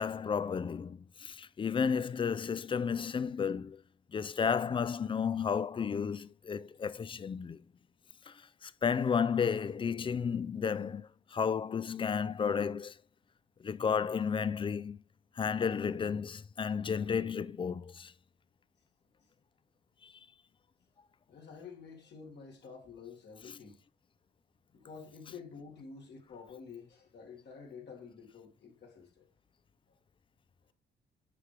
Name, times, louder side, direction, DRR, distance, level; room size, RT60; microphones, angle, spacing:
voice 1, 0.0-3.8 4.1-7.6 8.3-13.0 13.6-15.0 15.4-18.1 20.0-20.1, left 6 dB, 25° left, 0.4 m, -32 dB
voice 2, 21.3-23.8 24.7-29.3, left 5 dB, 60° left, 2.1 m, -49 dB
9.7 x 4.6 x 3.3 m
cardioid pair, 90°, 20 cm